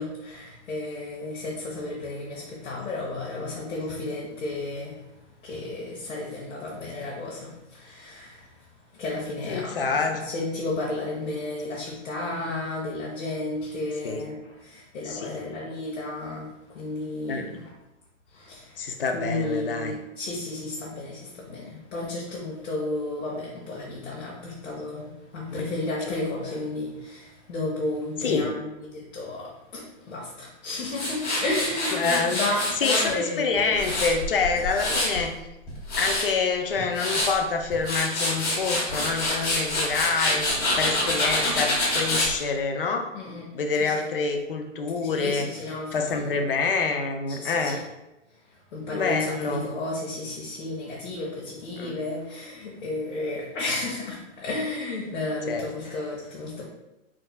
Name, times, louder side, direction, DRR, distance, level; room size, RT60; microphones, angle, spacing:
voice 1, 0.0-5.0 5.4-8.4 9.0-17.6 18.3-18.6 19.1-34.2 34.6-34.8 43.1-43.5 43.8-44.1 45.0-46.5 47.3-47.8 48.7-56.7, left 2 dB, 85° left, -5 dB, 1.2 m, -33 dB
voice 2, 9.5-10.2 14.0-14.2 15.1-15.4 17.3-17.4 18.8-19.9 28.2-28.5 31.9-32.4 32.8-35.4 36.0-40.5 40.7-43.1 43.5-45.5 45.9-47.8 48.9-49.7 51.8-52.0 55.5-55.7, left 4 dB, 45° left, 5 dB, 0.5 m, -27 dB
Tools, 30.9-33.1 33.6-35.2 35.7-36.3 36.8-37.3 37.7-42.3, left 1 dB, 30° left, 1.3 m, -26 dB
4.4 x 3.7 x 2.3 m, 0.94 s
hypercardioid pair, 175°, 38 cm